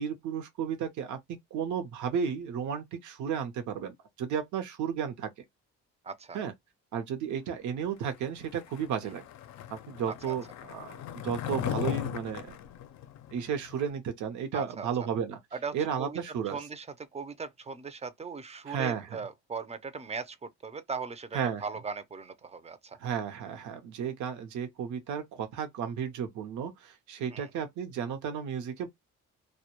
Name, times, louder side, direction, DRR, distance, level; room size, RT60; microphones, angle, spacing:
voice 1, 0.0-5.3 6.3-6.5 6.9-9.2 9.7-12.6 13.3-15.4 15.7-16.6 18.7-19.2 21.3-21.6 23.0-28.9, right 7 dB, 70° right, 0.7 m, -33 dB
voice 2, 6.0-6.4 10.3-10.4 14.5-14.9 15.5-16.9 17.1-23.0 27.3-27.5, right 5 dB, 20° right, 0.4 m, -39 dB
Skateboard, 8.4-13.9, left 11 dB, 65° left, 0.5 m, -38 dB
2.1 x 2.1 x 2.9 m
cardioid pair, 90°, 30 cm